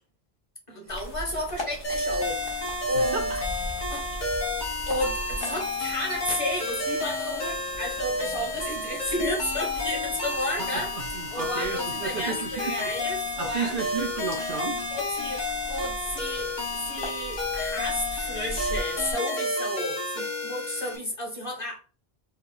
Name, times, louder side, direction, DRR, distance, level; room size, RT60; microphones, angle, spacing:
voice 1, 0.7-2.6 2.9-3.3 3.9-4.4 4.9-13.8 14.9-21.8, left 1 dB, 30° left, 1.3 m, -32 dB
sound 1, 0.9-19.1, equal, 65° left, 1.3 m, -41 dB
sound 2, 1.8-21.0, left 2 dB, 50° left, 1.2 m, -31 dB
voice 2, 10.7-12.9 13.4-14.8, right 6 dB, 60° right, 0.7 m, -33 dB
4.2 x 2.1 x 3.6 m
omnidirectional pair, 1.0 m